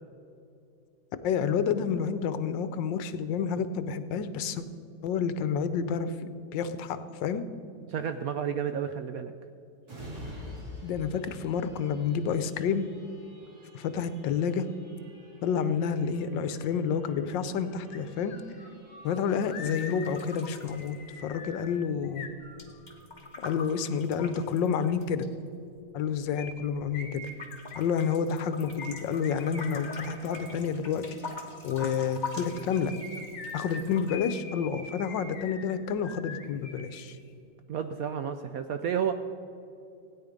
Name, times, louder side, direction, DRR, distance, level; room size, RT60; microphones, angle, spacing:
voice 1, 1.2-4.6 5.0-6.1 6.5-7.4 10.8-12.9 13.7-14.7 15.4-18.4 19.0-21.0 21.2-22.3 23.4-25.3 25.9-27.2 27.7-32.9 33.5-37.2, left 6 dB, 80° left, 11 dB, 1.4 m, -29 dB
voice 2, 7.9-9.3 37.7-39.1, right 8 dB, 70° right, 8 dB, 0.8 m, -31 dB
sound 1, 9.8-23.2 23.6-23.8, equal, 55° right, 3.4 m, -49 dB
sound 2, 17.9-18.0 18.3-23.1 26.3-30.6 32.4-37.0 37.3-37.4, left 3 dB, 60° left, 2.0 m, -44 dB
sound 3, 19.6-21.6 21.9-25.3 25.9-26.9 27.2-34.1, left 3 dB, 25° left, 1.5 m, -44 dB
16.5 x 9.6 x 5.2 m, 2.6 s
omnidirectional pair, 2.0 m